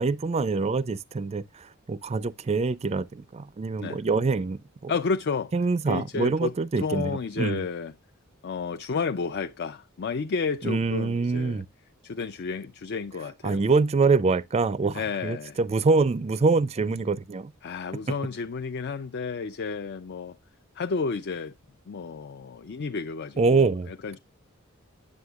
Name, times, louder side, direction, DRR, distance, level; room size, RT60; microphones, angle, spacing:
voice 1, 0.0-4.9 5.5-7.6 10.6-11.7 13.4-17.5 23.4-23.9, right 4 dB, 30° right, 0.4 m, -25 dB
voice 2, 4.9-5.5 5.9-7.9 8.4-11.6 12.0-13.7 14.9-15.6 17.6-20.4 20.8-21.5 21.9-24.2, left 4 dB, 55° left, 0.5 m, -31 dB
9.6 x 6.8 x 2.3 m
head